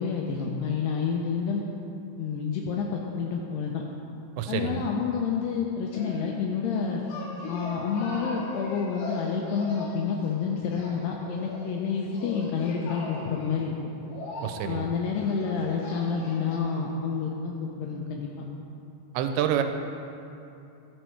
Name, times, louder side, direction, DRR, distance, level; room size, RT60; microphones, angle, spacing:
voice 1, 0.0-1.6 2.2-3.8 4.5-7.0 7.5-13.7 14.6-18.3, left 6 dB, 90° left, 0 dB, 2.4 m, -29 dB
voice 2, 4.4-4.8 14.4-14.9 19.1-19.6, right 10 dB, 80° right, 7 dB, 2.7 m, -27 dB
sound 1, 5.9-6.6 7.1-16.6, left 2 dB, 70° left, 2.1 m, -39 dB
12.5 x 6.4 x 4.5 m, 2.7 s
omnidirectional pair, 5.3 m